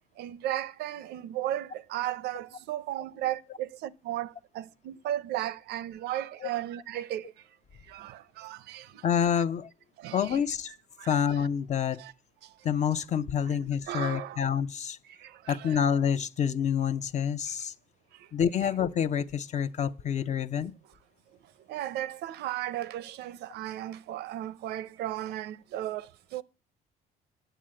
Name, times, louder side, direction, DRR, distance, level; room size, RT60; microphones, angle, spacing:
voice 1, 0.2-7.3 7.9-9.4 10.0-10.4 11.0-11.5 11.9-12.1 12.4-12.6 13.5-13.6 13.9-14.4 15.1-15.8 18.1-18.3 20.3-20.4 21.7-26.4, right 13 dB, 75° right, 0.5 m, -35 dB
voice 2, 9.0-9.7 10.1-10.7 11.1-12.0 12.6-15.0 15.5-17.7 18.3-20.7, left 8 dB, 45° left, 0.6 m, -27 dB
10.0 x 6.7 x 7.5 m
cardioid pair, 110°, 17 cm